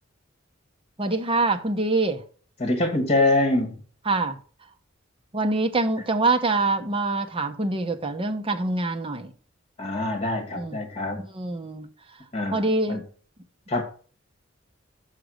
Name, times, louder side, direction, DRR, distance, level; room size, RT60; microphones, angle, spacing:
voice 1, 1.0-2.2 4.1-4.4 5.3-9.3 10.5-10.8 11.2-11.9 12.5-13.0, right 2 dB, 30° right, 0.9 m, -25 dB
voice 2, 2.6-3.8 9.8-11.2 12.3-12.6 12.9-13.0 13.7-13.8, left 2 dB, 35° left, 2.1 m, -24 dB
6.6 x 6.2 x 6.4 m
head